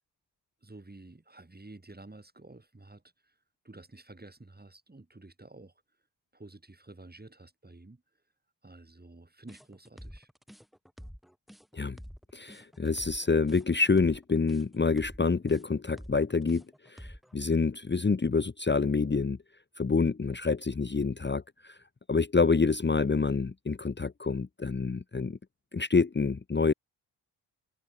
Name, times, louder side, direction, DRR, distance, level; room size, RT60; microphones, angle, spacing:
voice 1, 0.6-3.4 3.6-5.7 6.3-8.0 8.6-10.3, right 2 dB, 20° right, 5.9 m, -51 dB
sound 1, 9.5-17.3, equal, ahead, 2.0 m, -48 dB
voice 2, 12.3-19.4 19.8-21.8 22.1-25.4 25.7-26.7, left 4 dB, 25° left, 1.2 m, -27 dB
supercardioid pair, 50°, 43 cm